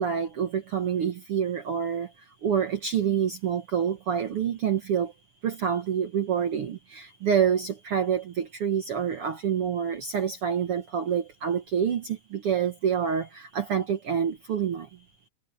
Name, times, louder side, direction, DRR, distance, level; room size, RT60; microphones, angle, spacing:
voice 1, 0.0-2.1 2.4-5.1 5.4-14.9, right 8 dB, 55° right, 1.9 m, -27 dB
omnidirectional pair, 3.6 m